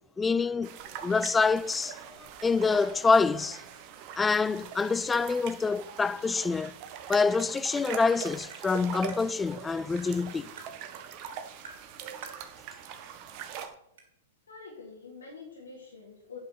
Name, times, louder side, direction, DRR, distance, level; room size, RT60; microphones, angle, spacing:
voice 1, 0.2-0.7 1.0-2.0 2.4-3.6 4.2-6.7 7.1-10.5, left 4 dB, 15° left, 0.3 m, -26 dB
sound 1, 0.6-13.7, right 8 dB, 45° right, 1.4 m, -43 dB
Tap, 8.5-8.6 9.1-9.2 10.0-10.1 10.6-10.7 11.6-11.8 12.2-12.4 13.4-13.5 14.0-14.1, right 3 dB, 70° right, 3.4 m, -47 dB
voice 2, 14.5-16.4, left 4 dB, 80° left, 2.8 m, -46 dB
9.4 x 5.6 x 6.7 m
hypercardioid pair, 110°, 0 cm